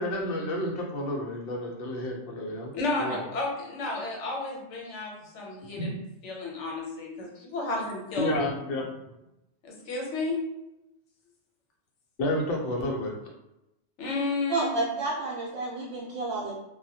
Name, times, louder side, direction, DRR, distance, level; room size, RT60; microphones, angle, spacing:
voice 1, 0.0-2.7 3.0-3.2 5.8-6.0 8.2-8.8 12.2-13.1, left 1 dB, 60° left, -1 dB, 0.7 m, -30 dB
voice 2, 2.7-5.9 6.2-8.4 9.6-10.4 14.0-14.8, left 3 dB, 85° left, -1 dB, 1.0 m, -32 dB
voice 3, 14.5-16.5, right 3 dB, 75° right, -7 dB, 0.9 m, -30 dB
2.2 x 2.0 x 2.6 m, 0.91 s
omnidirectional pair, 1.2 m